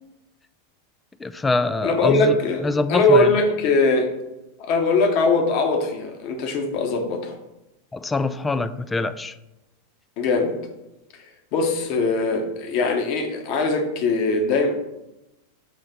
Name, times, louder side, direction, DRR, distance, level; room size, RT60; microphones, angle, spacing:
voice 1, 1.2-2.4 2.6-3.3 7.9-9.4, left 3 dB, 10° left, 12 dB, 0.3 m, -24 dB
voice 2, 1.8-4.1 4.6-7.4 10.2-10.6 11.5-14.7, left 3 dB, 45° left, 4 dB, 1.0 m, -21 dB
6.4 x 3.2 x 5.4 m, 0.94 s
figure-of-eight pair, 90°, 0 cm